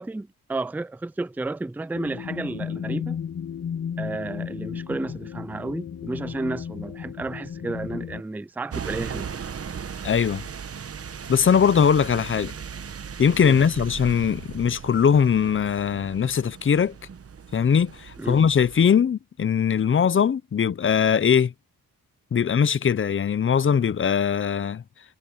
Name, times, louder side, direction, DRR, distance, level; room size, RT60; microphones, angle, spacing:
voice 1, 0.0-3.2 4.0-9.3 13.4-13.7 18.2-18.4, right 2 dB, 5° right, 0.4 m, -32 dB
sound 1, 1.9-8.2, left 8 dB, 55° left, 1.9 m, -34 dB
sound 2, 8.7-18.9, right 7 dB, 40° right, 1.1 m, -37 dB
voice 2, 10.0-10.4 11.3-12.5 13.2-16.9 17.5-21.5 22.3-24.8, left 7 dB, 35° left, 0.6 m, -21 dB
wide cardioid pair, 130°, 36 cm